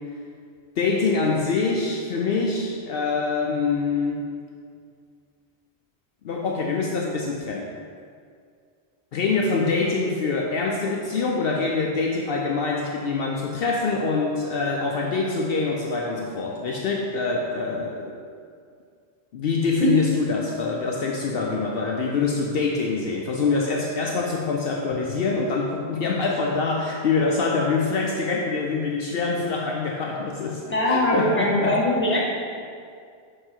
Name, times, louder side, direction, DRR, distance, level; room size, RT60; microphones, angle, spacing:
voice 1, 0.8-4.3 6.2-7.7 9.1-18.1 19.3-31.8 32.1-32.2, left 4 dB, 65° left, 0 dB, 0.8 m, -25 dB
voice 2, 30.7-32.3, left 1 dB, 10° left, -4 dB, 1.3 m, -21 dB
6.5 x 4.5 x 4.4 m, 2.2 s
omnidirectional pair, 1.1 m